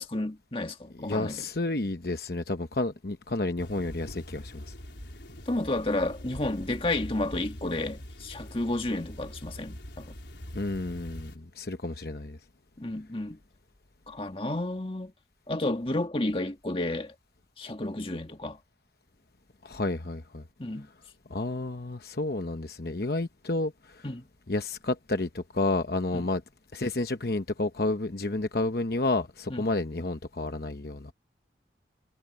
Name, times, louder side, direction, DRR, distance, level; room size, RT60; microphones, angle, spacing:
voice 1, 0.0-1.4 5.5-10.1 12.8-13.4 14.1-15.1 15.5-17.1 17.6-18.6 20.6-20.9 24.0-24.3 26.1-26.2 29.5-29.6, left 2 dB, 30° left, 1.8 m, -31 dB
voice 2, 1.0-4.7 10.5-12.4 19.6-20.4 21.3-24.1 24.5-26.4 26.7-31.1, left 2 dB, 60° left, 1.0 m, -30 dB
sound 1, 3.6-11.4, equal, 85° left, 4.5 m, -43 dB
head